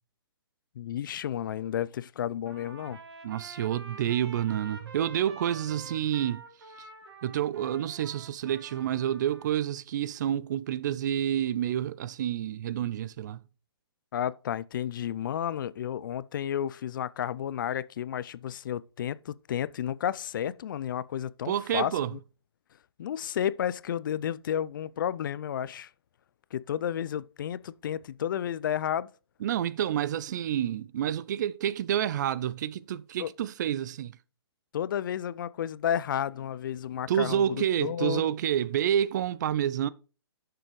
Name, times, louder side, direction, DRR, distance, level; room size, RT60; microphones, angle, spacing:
voice 1, 0.8-3.0 14.1-22.2 23.0-25.9 26.5-29.1 33.2-33.3 34.7-38.2, left 10 dB, 50° left, 0.4 m, -32 dB
Trumpet, 2.4-9.6, right 3 dB, 70° right, 2.8 m, -48 dB
voice 2, 3.2-6.4 7.2-13.4 21.5-22.1 29.4-34.2 37.1-39.9, right 10 dB, 45° right, 0.4 m, -29 dB
10.0 x 6.8 x 3.1 m
hypercardioid pair, 135°, 14 cm